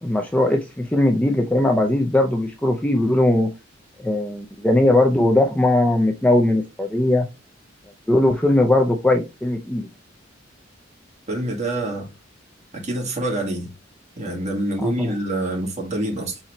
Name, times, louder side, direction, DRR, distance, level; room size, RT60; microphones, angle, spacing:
voice 1, 0.0-3.5 4.0-7.3 8.1-9.9 14.8-15.1, left 1 dB, 5° left, 0.4 m, -19 dB
voice 2, 11.3-12.1 12.7-13.7 14.2-16.4, right 1 dB, 35° right, 1.7 m, -26 dB
4.3 x 3.8 x 3.0 m
head